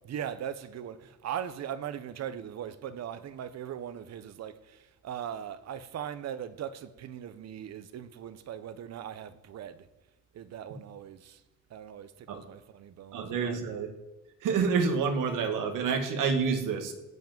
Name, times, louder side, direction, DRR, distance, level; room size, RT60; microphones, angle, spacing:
voice 1, 0.0-9.9 10.3-11.4 11.7-13.6, right 9 dB, 55° right, 0.9 m, -39 dB
voice 2, 13.1-13.9 14.4-16.9, right 5 dB, 75° right, 2.0 m, -28 dB
16.5 x 6.0 x 9.0 m
cardioid pair, 150°, 32 cm